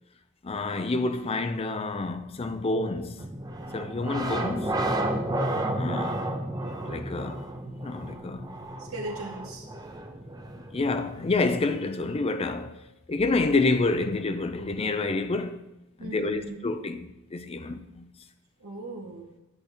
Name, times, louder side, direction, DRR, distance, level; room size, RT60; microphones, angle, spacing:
voice 1, 0.4-3.3 3.7-4.9 5.7-6.3 6.6-8.5 10.6-12.8 13.1-15.7 16.0-18.1, left 3 dB, 25° left, 0.4 m, -28 dB
sound 1, 3.2-11.9, right 1 dB, 20° right, 0.7 m, -32 dB
voice 2, 8.8-9.6 16.0-16.5 18.6-19.3, right 2 dB, 85° right, 1.4 m, -38 dB
11.0 x 5.9 x 3.5 m
head